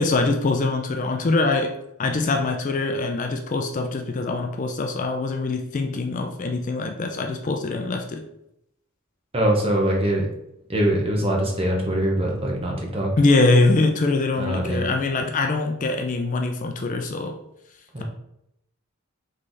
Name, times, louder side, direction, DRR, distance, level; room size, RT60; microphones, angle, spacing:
voice 1, 0.0-1.7 2.0-8.2 13.2-17.4, left 3 dB, 35° left, 4 dB, 0.3 m, -23 dB
voice 2, 9.3-10.3 10.7-13.1 14.4-14.9 17.9-18.0, right 1 dB, 25° right, 0 dB, 0.8 m, -23 dB
3.8 x 3.2 x 3.9 m, 0.81 s
head